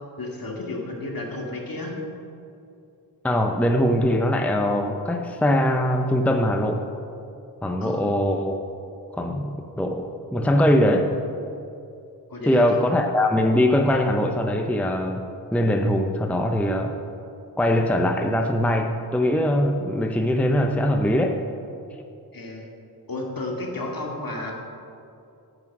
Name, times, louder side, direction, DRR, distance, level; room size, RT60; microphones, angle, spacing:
voice 1, 0.2-1.9 7.8-8.0 12.3-12.6 22.3-22.7 23.1-24.5, left 2 dB, 55° left, 0 dB, 2.2 m, -32 dB
voice 2, 3.2-6.9 7.6-8.6 9.1-11.2 12.4-17.0 17.6-21.4, left 1 dB, 5° left, 4 dB, 0.7 m, -22 dB
9.8 x 8.8 x 6.1 m, 2.6 s
wide cardioid pair, 70°, 42 cm